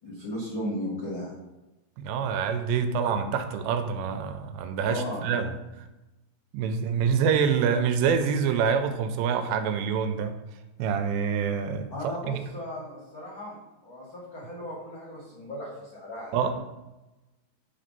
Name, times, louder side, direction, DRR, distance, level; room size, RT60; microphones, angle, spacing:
voice 1, 0.0-1.3 4.8-5.3 11.9-13.6 13.8-16.5, left 1 dB, 60° left, -7 dB, 1.2 m, -36 dB
voice 2, 2.0-5.5 6.5-10.3 10.8-11.9 12.3-12.4 16.3-16.6, right 6 dB, 85° right, 8 dB, 2.7 m, -26 dB
5.7 x 4.2 x 5.2 m, 1.0 s
omnidirectional pair, 5.0 m